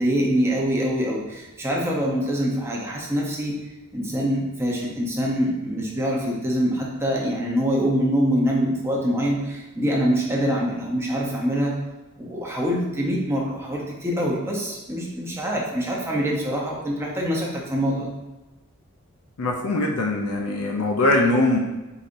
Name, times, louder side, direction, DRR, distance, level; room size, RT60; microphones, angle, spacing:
voice 1, 0.0-3.5 3.9-11.7 12.2-18.1, equal, 10° right, -3 dB, 0.6 m, -24 dB
voice 2, 19.4-21.6, left 2 dB, 80° left, 1 dB, 0.5 m, -21 dB
4.8 x 2.7 x 2.5 m, 1.1 s
head